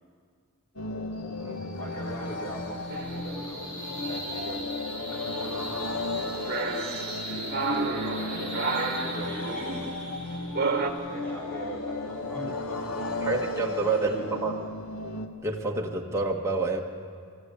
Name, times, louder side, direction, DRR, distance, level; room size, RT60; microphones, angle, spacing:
sound 1, 0.8-15.3, left 2 dB, 75° left, 1.4 m, -35 dB
sound 2, 1.1-13.8, equal, 35° left, 4.7 m, -41 dB
voice 1, 1.8-4.6 5.0-6.8 8.1-9.5 11.1-13.4 14.1-14.3, right 1 dB, 10° left, -5 dB, 4.9 m, -42 dB
sound 3, 2.9-3.3 4.0-4.3 6.5-10.9, right 3 dB, 45° right, 1.5 m, -31 dB
voice 2, 13.2-14.5 15.4-16.8, right 3 dB, 15° right, -1 dB, 1.6 m, -28 dB
25.5 x 14.5 x 8.3 m, 2.2 s
head